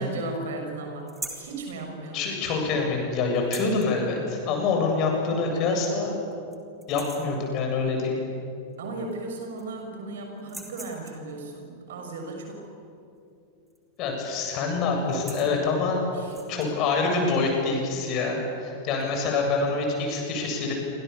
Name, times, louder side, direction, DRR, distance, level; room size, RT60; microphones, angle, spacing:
voice 1, 0.0-2.3 8.8-12.6 16.1-16.5, right 2 dB, 60° right, 3 dB, 6.6 m, -36 dB
sound 1, 1.1-1.5 3.4-3.9 5.3-5.4 5.8-5.9 6.3-6.6 6.8-7.4 8.7-8.8 9.1-9.8 10.4-11.3 13.7-14.0 14.3-14.5 15.0-15.6 16.2-16.7, right 3 dB, 10° right, 4.2 m, -41 dB
voice 2, 2.1-6.1 6.9-8.2 14.0-16.0 16.5-20.7, left 4 dB, 40° left, 2 dB, 7.9 m, -26 dB
29.0 x 26.5 x 7.3 m, 2.5 s
figure-of-eight pair, 90°, 0 cm